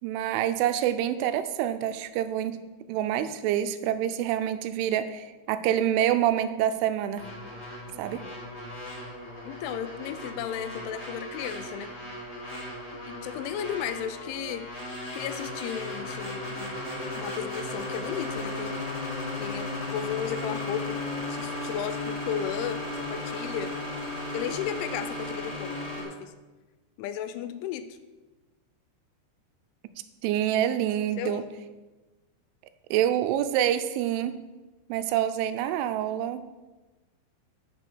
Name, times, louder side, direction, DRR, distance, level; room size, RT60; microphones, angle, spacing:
voice 1, 0.0-2.6 2.9-7.2 8.0-8.2 30.2-31.4 32.9-34.4 34.9-36.4, right 11 dB, 85° right, 10 dB, 3.1 m, -26 dB
sound 1, 7.2-26.0, left 2 dB, 20° left, 3.0 m, -36 dB
voice 2, 9.5-11.9 13.1-14.7 15.1-16.8 17.1-18.8 19.4-21.0 21.3-22.8 23.1-23.8 24.3-26.3 27.0-27.9 31.2-31.5, left 9 dB, 85° left, 11 dB, 3.0 m, -34 dB
7.9 x 6.9 x 6.0 m, 1.2 s
omnidirectional pair, 5.5 m